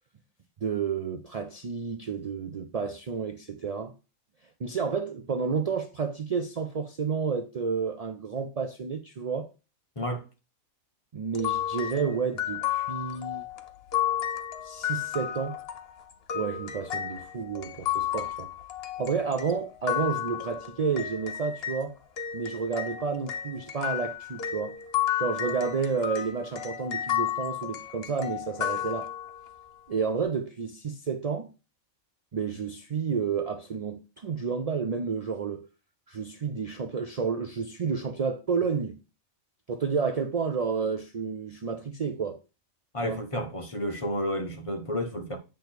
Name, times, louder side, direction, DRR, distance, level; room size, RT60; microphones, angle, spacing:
voice 1, 0.6-3.9 4.6-9.5 11.1-13.5 14.6-15.6 16.3-18.5 19.0-22.0 22.3-24.8 25.2-29.1 29.9-31.5 32.3-35.7 36.1-39.0 39.7-42.4 43.0-43.2, right 5 dB, 70° right, 0.3 m, -30 dB
sound 1, 11.3-21.8 22.2-29.5, left 11 dB, 55° left, 0.9 m, -32 dB
voice 2, 42.9-45.4, equal, 30° left, 0.9 m, -31 dB
8.1 x 3.1 x 4.4 m
omnidirectional pair, 1.4 m